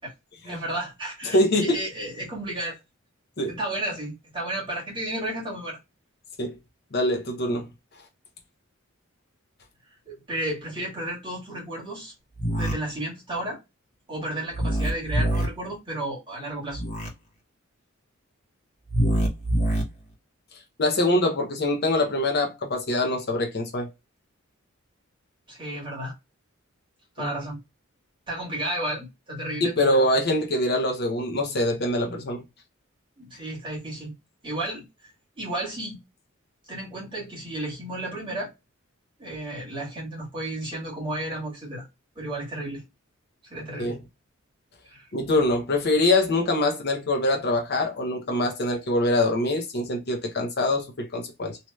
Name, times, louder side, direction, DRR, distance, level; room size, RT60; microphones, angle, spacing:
voice 1, 0.4-2.7 3.5-5.8 10.1-12.1 12.6-13.6 14.1-16.8 25.5-26.1 27.2-27.6 28.3-30.0 33.2-34.1 34.4-34.8 35.4-36.0 36.7-38.5 39.2-41.9 42.2-42.8 43.4-44.0 44.9-45.1, right 1 dB, 25° right, 1.7 m, -32 dB
voice 2, 1.2-1.8 3.4-3.6 6.4-6.5 6.9-7.7 20.8-23.9 27.2-27.3 29.6-32.4 43.8-44.0 45.1-51.6, left 1 dB, 50° left, 0.7 m, -24 dB
sound 1, 12.3-12.7 14.5-15.5 16.7-17.1 18.9-19.8, right 1 dB, 35° left, 1.0 m, -24 dB
3.1 x 2.8 x 2.2 m
head